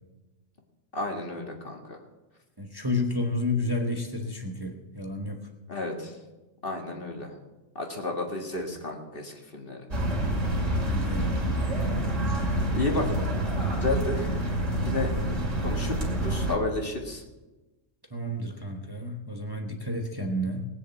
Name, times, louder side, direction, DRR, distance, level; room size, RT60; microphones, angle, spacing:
voice 1, 0.9-2.0 5.7-6.1 6.6-7.3 7.8-9.9 12.7-13.1 13.8-14.4 14.8-15.1 15.6-17.2, left 2 dB, 45° left, 2 dB, 2.1 m, -32 dB
voice 2, 2.6-5.4 10.7-11.3 18.1-20.7, left 1 dB, 20° right, 2 dB, 1.2 m, -31 dB
sound 1, 9.9-16.6, right 1 dB, 80° right, 3.0 m, -27 dB
19.0 x 7.0 x 8.3 m, 1.1 s
omnidirectional pair, 1.3 m